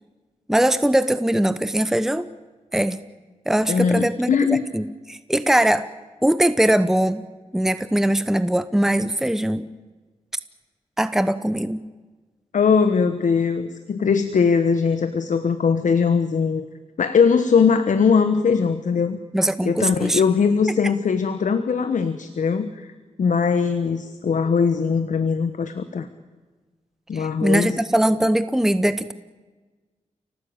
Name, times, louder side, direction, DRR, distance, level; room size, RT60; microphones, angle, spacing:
voice 1, 0.5-2.3 2.7-3.0 3.5-5.9 6.2-7.2 7.5-9.7 11.0-11.8 19.3-20.2 27.1-29.1, right 1 dB, 5° right, 13 dB, 0.9 m, -21 dB
voice 2, 3.7-4.7 12.5-16.7 17.0-19.2 19.6-22.9 23.2-26.1 27.1-27.8, left 5 dB, 75° left, 10 dB, 1.3 m, -20 dB
29.0 x 18.5 x 8.8 m, 1.3 s
cardioid pair, 75°, 13 cm